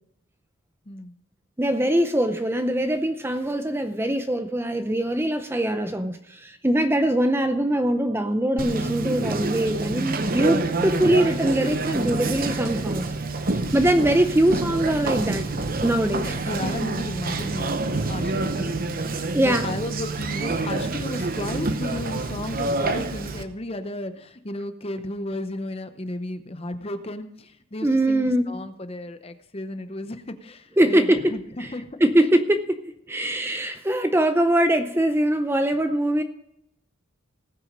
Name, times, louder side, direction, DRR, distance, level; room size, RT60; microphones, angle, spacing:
voice 1, 1.6-13.1 13.4-15.5 15.8-16.3 19.3-19.7 27.8-28.6 30.8-31.7 32.0-36.2, right 1 dB, 10° right, 0.5 m, -22 dB
Conversation, 8.6-23.4, right 3 dB, 40° right, 0.8 m, -27 dB
voice 2, 16.2-18.8 19.4-32.0, left 1 dB, 30° left, 0.7 m, -34 dB
18.5 x 6.2 x 5.1 m
head